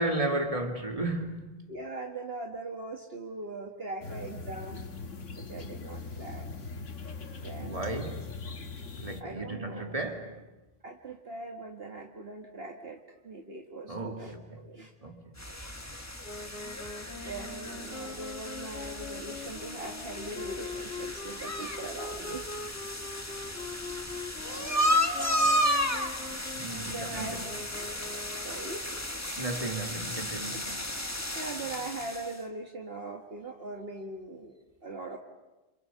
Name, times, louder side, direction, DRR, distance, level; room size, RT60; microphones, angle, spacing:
voice 1, 0.0-1.6 7.6-8.3 9.0-10.4 13.9-14.6 15.0-15.3 26.5-27.4 29.4-30.8, right 2 dB, 30° right, 2.7 m, -34 dB
voice 2, 1.7-4.8 5.4-6.5 7.3-7.9 9.2-10.0 10.8-14.9 17.1-22.5 24.4-25.1 26.9-27.5 28.4-28.9 30.5-30.6 31.4-34.5 34.8-35.2, right 2 dB, 55° right, 2.0 m, -41 dB
sound 1, 4.0-9.2, left 4 dB, 75° left, 1.9 m, -40 dB
sound 2, 15.4-32.4, equal, 15° left, 1.7 m, -33 dB
Wind instrument woodwind instrument, 16.2-28.7, left 4 dB, 60° left, 1.7 m, -43 dB
28.0 x 27.0 x 7.0 m
omnidirectional pair, 1.3 m